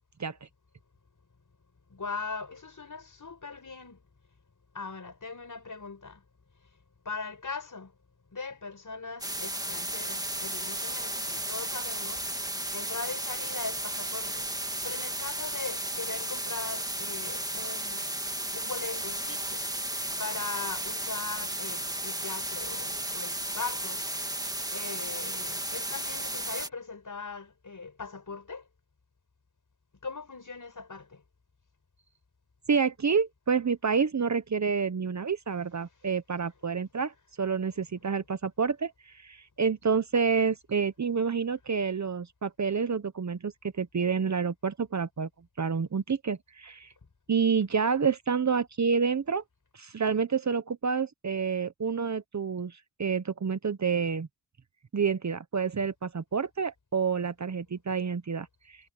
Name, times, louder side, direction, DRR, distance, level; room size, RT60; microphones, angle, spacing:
voice 1, 1.9-4.0 4.7-6.2 7.0-7.9 8.3-12.3 12.7-14.5 14.8-18.1 18.5-19.6 20.2-24.0 24.7-28.7 30.0-31.2, left 4 dB, 45° left, 6.0 m, -40 dB
sound 1, 9.2-26.7, right 1 dB, 10° right, 1.9 m, -34 dB
voice 2, 32.7-45.3 45.6-46.9 47.3-49.4 49.7-54.3 54.9-58.8, right 6 dB, 40° right, 1.1 m, -28 dB
cardioid pair, 60°, 42 cm